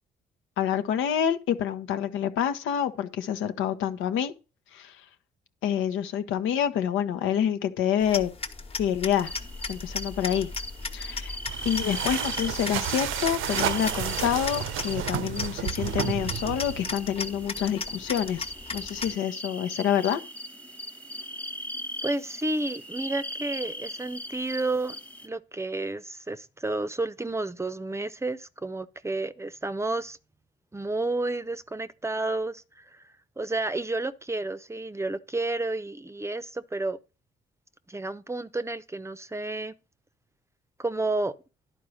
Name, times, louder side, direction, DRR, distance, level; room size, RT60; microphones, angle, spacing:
voice 1, 0.6-4.3 4.7-5.0 5.6-8.3 8.8-9.3 9.7-10.5 10.9-11.4 11.6-20.2, left 9 dB, 90° left, 1.0 m, -27 dB
sound 1, 8.0-19.2, left 4 dB, 30° left, 1.2 m, -37 dB
sound 2, 9.2-25.3, equal, 5° left, 1.0 m, -39 dB
sound 3, 11.4-17.0, right 11 dB, 85° right, 0.7 m, -31 dB
voice 2, 22.0-30.2 30.7-33.0 33.4-37.0 37.9-39.7 40.8-41.4, right 2 dB, 15° right, 0.6 m, -31 dB
11.0 x 4.7 x 6.4 m
cardioid pair, 90°, 20 cm